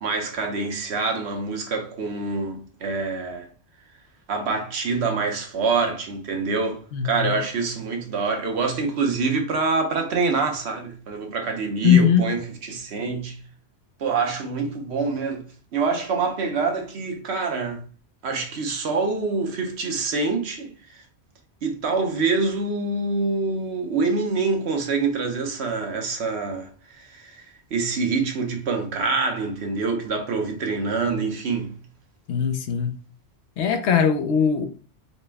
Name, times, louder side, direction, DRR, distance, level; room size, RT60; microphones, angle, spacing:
voice 1, 0.0-3.5 4.3-13.4 14.0-15.4 15.7-17.8 18.2-21.0 21.6-26.7 27.0-27.4 27.7-31.7, right 4 dB, 75° right, 1.0 m, -26 dB
voice 2, 6.9-7.4 11.8-12.3 32.3-32.9 33.6-34.7, left 7 dB, 75° left, 0.9 m, -20 dB
4.1 x 2.1 x 3.4 m
omnidirectional pair, 1.1 m